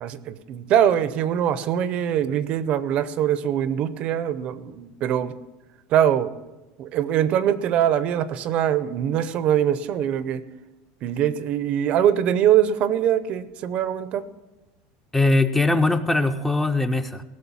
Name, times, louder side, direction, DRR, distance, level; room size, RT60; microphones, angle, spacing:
voice 1, 0.0-5.3 5.9-6.3 6.8-10.4 11.0-14.2, right 10 dB, 40° right, 15 dB, 0.6 m, -22 dB
voice 2, 15.1-17.2, left 2 dB, 5° left, 9 dB, 0.5 m, -21 dB
16.5 x 6.6 x 7.1 m, 1.1 s
cardioid pair, 165°, 3 cm